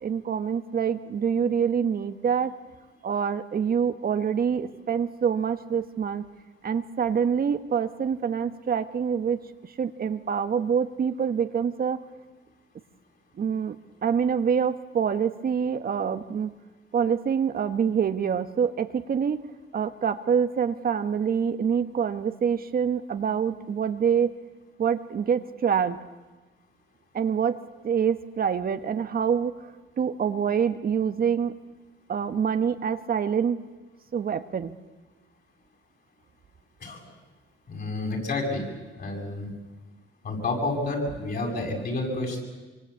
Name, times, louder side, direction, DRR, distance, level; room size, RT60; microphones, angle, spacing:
voice 1, 0.0-2.6 3.0-6.3 6.6-12.0 13.4-13.8 14.0-16.5 16.9-19.4 19.7-24.3 24.8-26.0 27.1-27.6 27.8-29.7 30.0-31.5 32.1-33.6 34.1-34.7, right 7 dB, 50° right, 9 dB, 1.3 m, -26 dB
voice 2, 37.7-38.6 39.0-39.5 40.2-42.4, left 2 dB, 50° left, 0 dB, 7.9 m, -29 dB
25.0 x 24.5 x 8.4 m, 1.2 s
cardioid pair, 90°, 20 cm